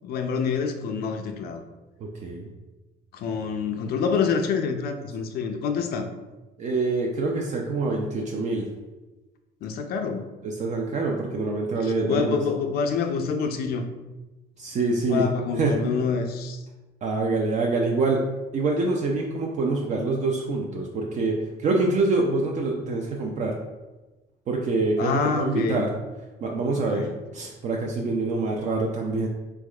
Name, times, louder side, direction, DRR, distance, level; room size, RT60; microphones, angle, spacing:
voice 1, 0.0-1.6 3.1-6.1 9.6-10.3 11.8-13.8 15.1-16.6 25.0-25.9 26.7-27.1, left 5 dB, 65° left, 6 dB, 0.4 m, -27 dB
voice 2, 2.0-2.5 6.6-8.7 10.4-12.4 14.6-15.2 15.6-15.8 17.0-18.2 18.5-23.5 24.5-25.9 26.4-27.1 27.3-29.3, right 3 dB, 45° right, 0 dB, 0.4 m, -25 dB
3.4 x 3.1 x 2.3 m, 1.1 s
cardioid pair, 110°, 17 cm